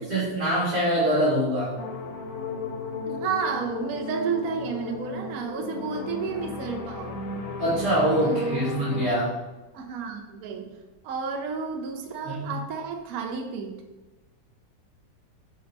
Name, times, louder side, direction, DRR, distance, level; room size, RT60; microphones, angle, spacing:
voice 1, 0.0-1.8 7.6-9.3 12.3-12.6, right 1 dB, 45° right, -8 dB, 2.1 m, -24 dB
sound 1, 1.8-9.1, left 3 dB, 60° left, 1.0 m, -35 dB
voice 2, 3.0-7.4 8.2-9.0 9.7-10.7 11.0-13.7, right 5 dB, 65° right, 2 dB, 1.1 m, -31 dB
5.4 x 4.4 x 4.0 m, 1.1 s
omnidirectional pair, 1.8 m